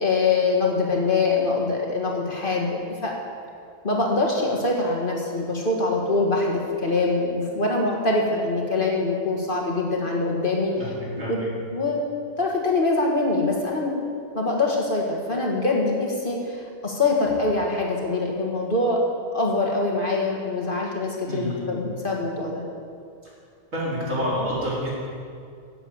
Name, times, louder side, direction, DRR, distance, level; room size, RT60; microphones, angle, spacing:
voice 1, 0.0-3.1 3.8-10.7 11.2-11.4 11.7-12.0 12.4-13.9 14.3-19.0 19.3-22.6, left 3 dB, 40° left, -1 dB, 1.9 m, -24 dB
voice 2, 10.8-11.5 21.3-21.7 23.7-24.9, equal, 75° right, -7 dB, 4.6 m, -28 dB
12.5 x 8.0 x 8.2 m, 2.3 s
omnidirectional pair, 1.4 m